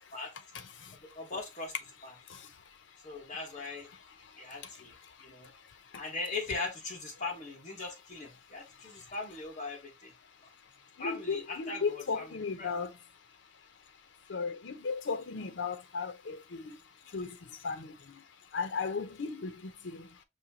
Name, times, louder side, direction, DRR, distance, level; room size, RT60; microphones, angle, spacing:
voice 1, 1.0-1.7 2.0-2.1 3.0-3.9 4.4-5.5 6.0-10.1 11.0-12.2 12.6-12.7, left 3 dB, 40° left, 1.3 m, -40 dB
voice 2, 11.0-13.0 14.3-16.7 17.1-17.4 17.6-17.9 18.5-20.1, left 5 dB, 80° left, 0.6 m, -35 dB
5.4 x 2.7 x 2.8 m
head